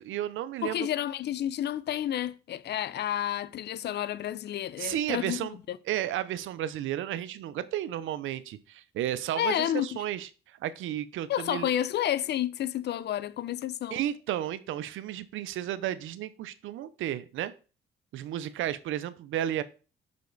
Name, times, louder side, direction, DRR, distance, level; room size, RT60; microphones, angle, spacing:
voice 1, 0.0-0.9 4.8-5.6 5.9-11.7 13.9-17.5 18.1-19.6, right 12 dB, 80° right, 0.6 m, -33 dB
voice 2, 0.6-5.8 9.4-9.9 11.3-14.0, left 11 dB, 60° left, 0.5 m, -30 dB
5.7 x 5.1 x 3.9 m
cardioid pair, 90°, 20 cm